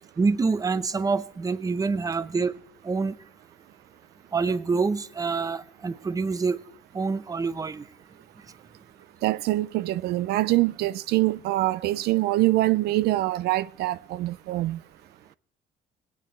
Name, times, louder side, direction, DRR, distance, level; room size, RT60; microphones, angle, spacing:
voice 1, 0.2-2.5 2.8-3.2 4.3-6.6 6.9-7.8, right 4 dB, 20° right, 0.7 m, -26 dB
voice 2, 9.2-14.8, right 17 dB, 75° right, 0.4 m, -24 dB
19.0 x 9.4 x 4.4 m
cardioid pair, 110°, 17 cm